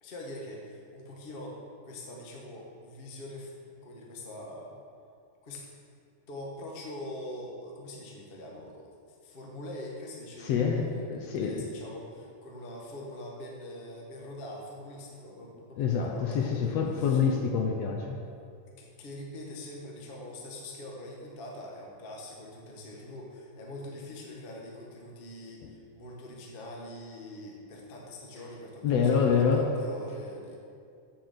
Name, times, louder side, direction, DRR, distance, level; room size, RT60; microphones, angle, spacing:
voice 1, 0.0-4.8 5.4-5.6 6.3-8.9 9.2-17.2 18.8-30.6, left 1 dB, 50° left, -2 dB, 0.6 m, -43 dB
voice 2, 10.4-11.6 15.8-18.2 25.6-25.7 28.8-29.7, left 6 dB, 75° left, 1 dB, 1.6 m, -26 dB
7.6 x 7.1 x 6.9 m, 2.4 s
omnidirectional pair, 3.4 m